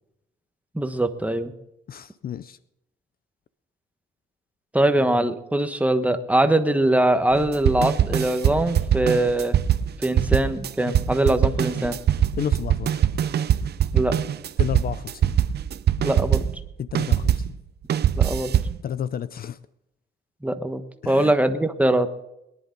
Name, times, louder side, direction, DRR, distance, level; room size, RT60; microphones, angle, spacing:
voice 1, 0.7-1.5 4.7-9.6 10.0-12.0 13.9-14.2 16.0-16.5 18.2-18.5 20.4-22.1, right 1 dB, 5° right, 8 dB, 1.2 m, -22 dB
voice 2, 1.9-2.6 12.4-13.0 14.6-15.3 16.8-17.6 18.8-19.6 21.0-21.3, left 9 dB, 50° left, 16 dB, 0.5 m, -31 dB
sound 1, 7.3-17.5 17.9-18.8, right 10 dB, 55° right, 0.7 m, -22 dB
22.0 x 10.5 x 3.9 m, 0.85 s
cardioid pair, 90°, 20 cm